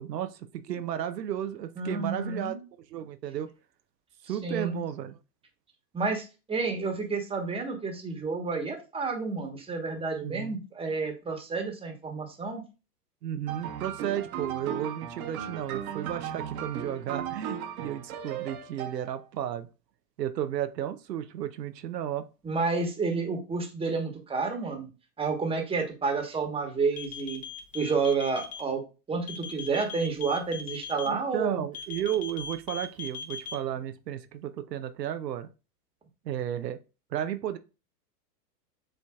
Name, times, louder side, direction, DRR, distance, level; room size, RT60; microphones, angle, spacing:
voice 1, 0.0-2.5 2.9-3.5 4.2-5.2 10.2-10.6 13.2-19.7 20.2-22.3 31.1-35.5 36.2-36.8 37.1-37.6, right 11 dB, 85° right, 0.7 m, -33 dB
voice 2, 1.8-2.6 4.4-4.8 5.9-12.6 22.4-24.9 25.2-27.4 27.7-28.8 29.1-31.6, right 4 dB, 10° right, 1.2 m, -30 dB
sound 1, 13.5-19.2, right 8 dB, 60° right, 1.1 m, -37 dB
sound 2, 26.9-28.6 29.3-31.1 31.7-33.5, left 6 dB, 15° left, 0.7 m, -39 dB
7.7 x 2.6 x 2.3 m
hypercardioid pair, 110°, 48 cm